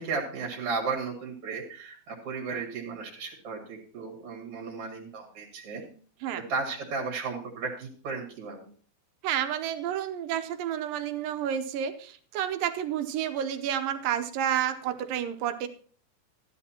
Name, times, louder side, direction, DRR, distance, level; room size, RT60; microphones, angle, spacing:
voice 1, 0.0-5.8 6.4-8.7, right 4 dB, 45° right, 0 dB, 2.7 m, -34 dB
voice 2, 9.2-15.7, right 10 dB, 75° right, 9 dB, 2.3 m, -30 dB
14.5 x 11.0 x 2.8 m, 0.44 s
omnidirectional pair, 4.3 m